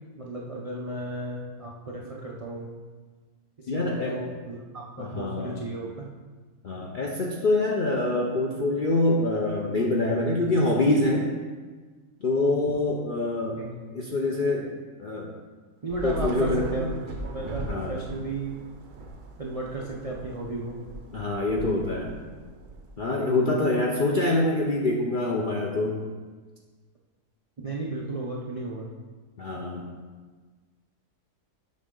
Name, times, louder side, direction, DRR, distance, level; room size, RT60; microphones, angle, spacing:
voice 1, 0.1-2.8 3.6-6.1 13.6-13.7 15.8-18.5 19.4-20.8 27.6-28.9, right 2 dB, 55° right, -3 dB, 0.3 m, -34 dB
voice 2, 3.7-4.2 5.0-5.6 6.6-11.3 12.2-13.6 13.9-14.7 15.0-15.3 16.0-16.8 17.4-18.0 21.1-22.2 23.0-26.0 29.4-29.9, left 2 dB, 55° left, -2 dB, 0.5 m, -25 dB
Thunder / Rain, 15.9-23.4, right 2 dB, 80° right, 1.3 m, -39 dB
7.6 x 5.3 x 3.8 m, 1.4 s
omnidirectional pair, 1.6 m